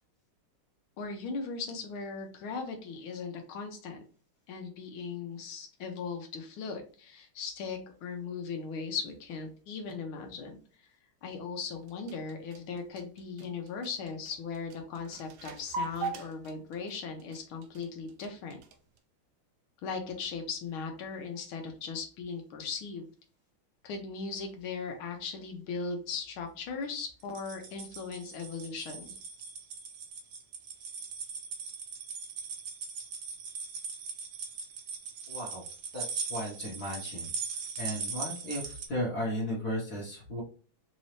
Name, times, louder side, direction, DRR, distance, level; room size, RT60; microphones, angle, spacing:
voice 1, 1.0-4.0 4.5-10.9 11.2-18.6 19.8-23.1 23.8-29.2, left 5 dB, 80° left, 4 dB, 1.6 m, -38 dB
sound 1, 11.7-19.0, right 4 dB, 80° right, 1.4 m, -41 dB
sound 2, 27.2-38.9, right 5 dB, 65° right, 1.0 m, -40 dB
voice 2, 35.3-35.6 35.9-37.3 37.8-40.4, equal, 55° left, -4 dB, 1.5 m, -35 dB
4.0 x 2.7 x 3.1 m, 0.39 s
omnidirectional pair, 2.3 m